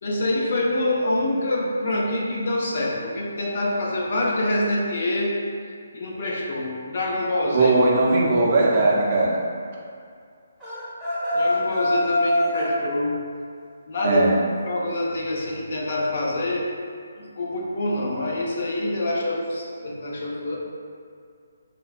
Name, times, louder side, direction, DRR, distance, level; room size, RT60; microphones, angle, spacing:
voice 1, 0.0-5.4 5.9-7.7 11.3-13.3 13.9-14.2 14.7-16.7 17.2-20.6, left 1 dB, 50° left, -3 dB, 0.6 m, -26 dB
voice 2, 7.5-9.4 14.0-14.4, right 2 dB, 40° right, -3 dB, 0.5 m, -19 dB
sound 1, 10.6-12.8, left 1 dB, ahead, 0.8 m, -23 dB
4.3 x 2.1 x 2.4 m, 2.2 s
hypercardioid pair, 160°, 0 cm